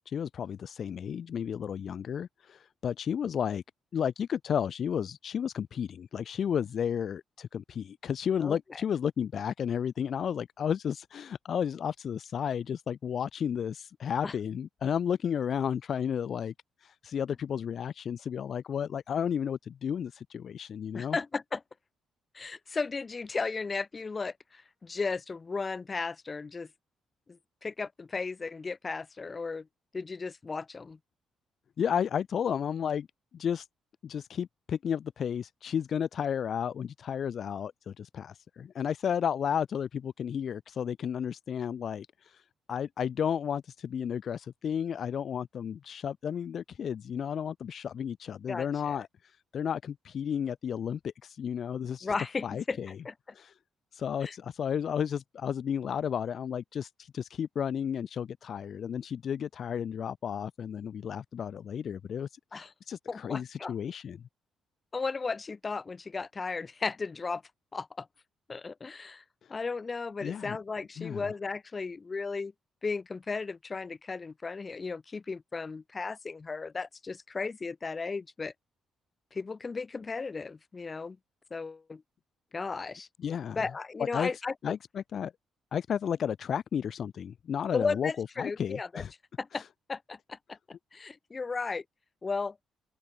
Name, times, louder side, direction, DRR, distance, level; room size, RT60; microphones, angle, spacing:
voice 1, 0.1-3.6 3.9-16.5 16.8-21.2 31.8-33.1 33.3-33.7 34.0-52.1 52.4-52.9 53.3-53.5 53.9-64.2 69.4-69.5 70.2-70.6 71.0-71.3 83.2-83.6 84.1-84.3 84.6-85.3 85.7-89.1 89.5-89.7, left 8 dB, 55° left, 0.6 m, -33 dB
voice 2, 8.4-8.8 14.2-14.3 20.9-21.6 22.3-26.7 27.3-29.7 29.9-31.0 48.5-49.0 52.0-52.8 53.0-53.1 54.2-54.3 62.5-62.7 63.1-63.7 64.9-67.4 67.7-68.1 68.5-69.2 69.5-72.5 72.8-78.5 79.3-81.2 81.5-82.0 82.5-83.1 83.5-84.7 87.7-89.0 89.4-89.6 89.9-91.8 92.2-92.6, left 4 dB, 30° left, 2.9 m, -35 dB
open air
cardioid pair, 90°, 0 cm